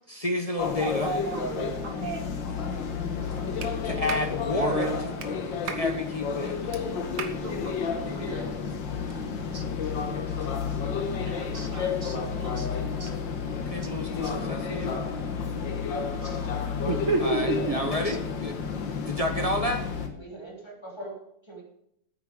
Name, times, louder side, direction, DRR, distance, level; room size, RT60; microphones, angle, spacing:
voice 1, 0.1-1.1 3.8-4.9 5.6-6.6 13.5-15.0 17.2-18.6 18.9-19.8, left 1 dB, 30° left, 4 dB, 0.6 m, -30 dB
sound 1, 0.6-20.1, left 5 dB, 60° left, 1.9 m, -31 dB
voice 2, 0.8-2.4 4.6-5.0 7.4-8.5 9.5-9.6 10.0-10.1 10.4-10.5 11.2-12.7 13.0-13.1 14.2-14.3 16.2-16.5 16.9-18.2, right 3 dB, 50° right, 6 dB, 1.0 m, -33 dB
Clapping, 3.6-3.7 4.1-4.3 5.2-5.3 5.7-5.9 6.7-6.8 7.2-7.4, right 7 dB, 80° right, 2.0 m, -35 dB
voice 3, 20.1-21.6, right 1 dB, 10° left, -2 dB, 3.2 m, -42 dB
9.3 x 9.2 x 6.5 m, 0.74 s
omnidirectional pair, 2.4 m